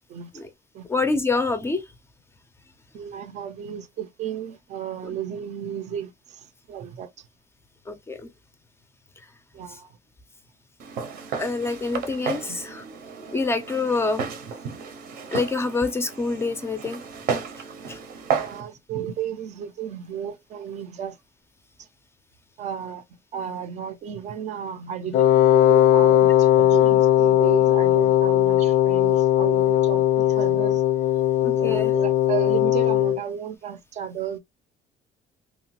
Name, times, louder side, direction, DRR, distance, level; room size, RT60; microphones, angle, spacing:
voice 1, 0.9-1.8 7.9-8.3 11.4-12.8 13.3-14.2 15.3-17.0 17.9-18.0 31.4-31.9, left 3 dB, 15° left, 0.4 m, -26 dB
voice 2, 2.9-7.3 9.5-10.0 12.5-12.6 17.9-18.0 18.3-21.2 21.8-21.9 22.6-23.0 23.3-30.8 31.5-34.4, right 9 dB, 50° right, 0.5 m, -33 dB
Walk footsteps, 10.8-18.6, right 6 dB, 75° right, 0.8 m, -33 dB
Wind instrument woodwind instrument, 25.1-33.2, left 12 dB, 85° left, 0.4 m, -18 dB
2.9 x 2.2 x 2.8 m
cardioid pair, 150°, 15 cm